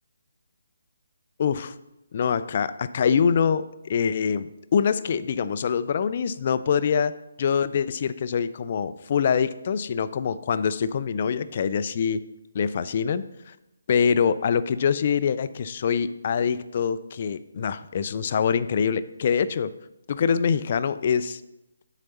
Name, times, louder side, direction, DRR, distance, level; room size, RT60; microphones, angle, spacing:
voice 1, 1.4-1.7 2.1-12.2 12.5-13.5 13.9-19.7 20.1-21.4, left 7 dB, 40° left, 14 dB, 0.3 m, -24 dB
7.7 x 4.0 x 5.8 m, 0.93 s
figure-of-eight pair, 145°, 0 cm